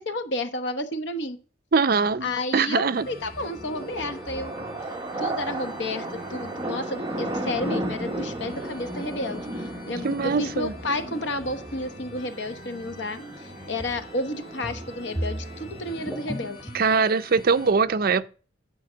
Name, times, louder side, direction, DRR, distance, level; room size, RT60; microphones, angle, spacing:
voice 1, 0.0-1.4 2.2-4.5 5.2-6.0 6.3-16.7, left 2 dB, 70° left, 1.1 m, -31 dB
voice 2, 1.7-3.1 10.0-10.7 16.7-18.3, right 5 dB, 50° right, 0.5 m, -22 dB
sound 1, 2.9-17.7, equal, 50° left, 3.8 m, -45 dB
sound 2, 3.5-16.5, right 1 dB, 20° right, 1.1 m, -35 dB
sound 3, 11.4-11.5 13.8-14.1 14.4-16.9, equal, 5° right, 0.7 m, -35 dB
10.5 x 5.1 x 7.3 m
head